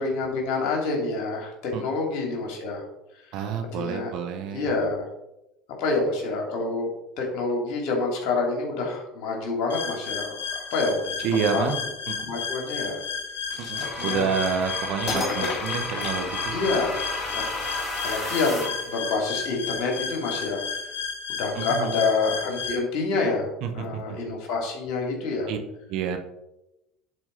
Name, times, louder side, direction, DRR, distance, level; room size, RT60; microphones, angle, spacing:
voice 1, 0.0-2.8 3.8-4.1 4.5-5.0 5.8-6.9 7.2-10.4 10.7-11.1 11.5-11.6 12.2-13.0 14.0-14.3 15.1-15.5 16.5-17.0 17.3-17.6 18.0-20.6 21.3-23.5 23.7-25.5, left 3 dB, 65° left, 0 dB, 3.0 m, -27 dB
voice 2, 3.3-4.7 11.2-11.7 12.1-12.3 13.6-16.6 21.5-22.0 23.6-24.2 25.5-25.6 25.9-26.2, right 7 dB, 65° right, 6 dB, 1.3 m, -29 dB
sound 1, 9.7-22.8, left 6 dB, 85° left, 0.9 m, -33 dB
sound 2, 13.5-14.6 15.1-16.9, left 4 dB, 45° left, 1.8 m, -34 dB
sound 3, 13.8-19.0, left 1 dB, 30° left, 3.2 m, -33 dB
11.0 x 4.7 x 4.1 m, 0.91 s
hypercardioid pair, 75°, 0 cm